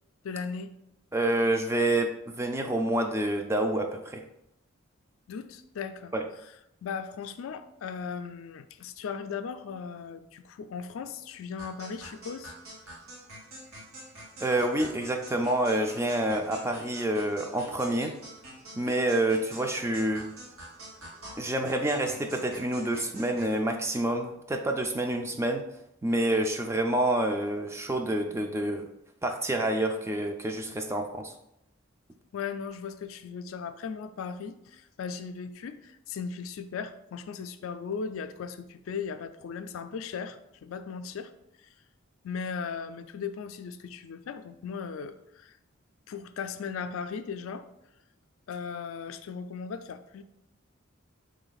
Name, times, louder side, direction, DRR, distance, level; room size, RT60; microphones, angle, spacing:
voice 1, 0.2-0.7 5.3-6.2 6.8-12.5 32.3-41.3 42.2-45.5 46.1-47.7 48.5-50.2, left 6 dB, 80° left, 10 dB, 0.3 m, -37 dB
voice 2, 1.1-4.2 6.1-6.2 14.4-18.1 18.8-20.3 21.4-25.6 26.0-28.9 29.2-31.3, right 1 dB, 15° right, 4 dB, 0.3 m, -28 dB
sound 1, 11.6-23.6, right 1 dB, 90° right, 1.4 m, -46 dB
4.3 x 3.2 x 3.9 m, 0.83 s
head